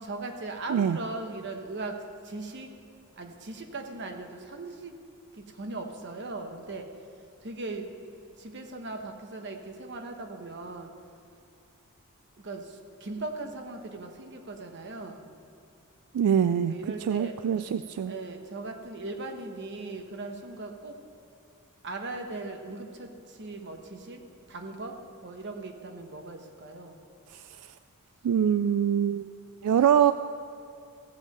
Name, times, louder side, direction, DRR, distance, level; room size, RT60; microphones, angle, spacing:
voice 1, 0.0-2.7 3.2-5.0 5.3-6.9 7.4-7.9 8.4-10.9 12.4-15.3 16.7-17.4 18.1-21.0 21.8-24.2 24.5-27.0, right 2 dB, 55° right, 4 dB, 1.0 m, -39 dB
voice 2, 16.1-16.7 17.1-18.1 27.3-27.4 28.2-29.3 29.6-30.1, right 8 dB, 80° right, 12 dB, 0.3 m, -24 dB
15.5 x 5.4 x 7.6 m, 2.4 s
head